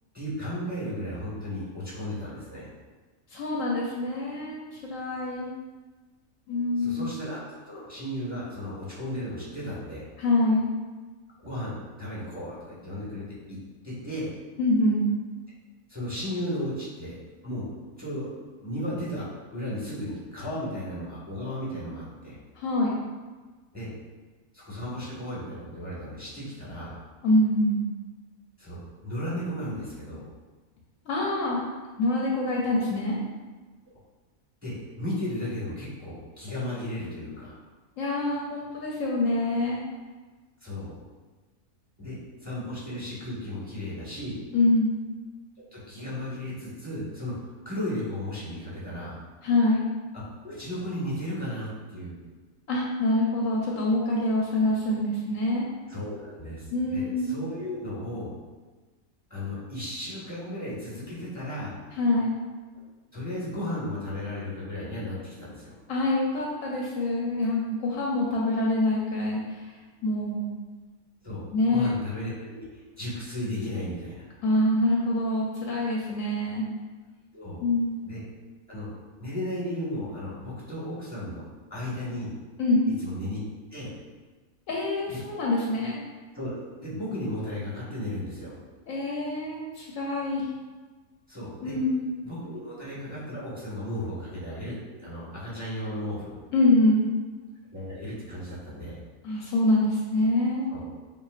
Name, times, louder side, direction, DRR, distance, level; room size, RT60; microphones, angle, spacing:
voice 1, 0.1-2.7 6.8-10.1 11.4-13.6 13.8-14.3 15.9-17.2 17.4-17.7 18.0-18.3 18.6-22.4 23.7-23.9 24.5-27.0 28.6-30.2 34.6-37.6 40.6-40.9 42.0-44.4 45.7-49.2 50.1-52.2 55.9-58.3 59.3-61.8 63.1-65.7 71.2-74.3 77.3-77.6 78.0-78.2 78.7-78.9 79.2-81.4 81.7-82.3 83.0-83.4 83.7-83.9 85.1-85.2 86.3-88.6 91.3-91.8 92.2-96.3 97.7-99.0 100.7-100.8, left 1 dB, 5° right, -9 dB, 1.3 m, -35 dB
voice 2, 3.3-5.5 6.5-7.1 10.2-10.7 14.6-15.1 22.6-23.0 27.2-27.8 31.1-31.6 32.0-33.2 38.0-39.8 44.5-45.0 49.4-49.9 52.7-55.7 56.7-57.3 62.0-62.3 65.9-69.7 70.0-70.5 71.5-71.9 74.4-76.7 77.6-78.0 82.6-82.9 84.7-86.0 88.9-90.5 91.6-92.1 96.5-97.1 99.2-100.7, left 1 dB, 70° left, -3 dB, 0.9 m, -25 dB
6.7 x 2.4 x 2.4 m, 1.3 s
omnidirectional pair, 1.5 m